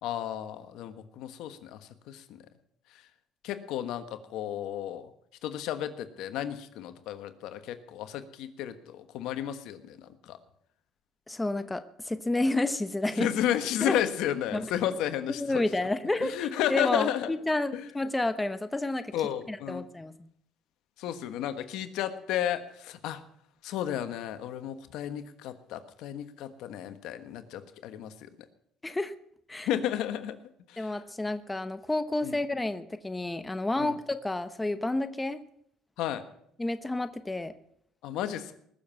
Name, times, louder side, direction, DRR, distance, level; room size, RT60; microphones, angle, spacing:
voice 1, 0.0-2.4 2.9-3.0 3.4-5.1 5.4-10.4 13.2-15.6 16.2-17.4 17.7-17.9 19.1-19.9 21.0-23.2 23.6-28.3 29.7-30.4 30.7-30.9 32.2-32.4 33.8-34.0 36.0-36.2 38.0-38.6, left 11 dB, 75° left, 10 dB, 1.4 m, -33 dB
voice 2, 11.3-13.3 13.8-14.0 14.5-14.7 15.4-16.4 16.7-19.1 19.5-20.1 28.8-29.1 29.5-29.7 30.8-35.4 36.6-37.5, left 2 dB, 10° left, 11 dB, 0.9 m, -30 dB
20.5 x 7.1 x 7.5 m, 0.70 s
cardioid pair, 95°, 0 cm